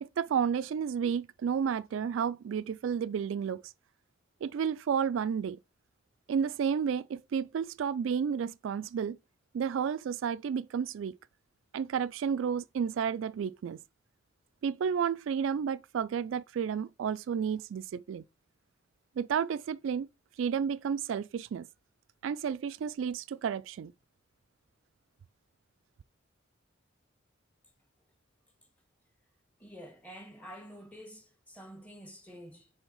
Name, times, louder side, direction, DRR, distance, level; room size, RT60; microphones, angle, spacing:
voice 1, 0.0-3.7 4.4-5.6 6.3-9.2 9.5-11.2 11.7-13.8 14.6-18.2 19.2-20.1 20.4-21.7 22.2-23.9, right 7 dB, 80° right, 0.3 m, -31 dB
voice 2, 29.6-32.7, equal, 10° left, 1.9 m, -48 dB
7.1 x 3.9 x 5.5 m
head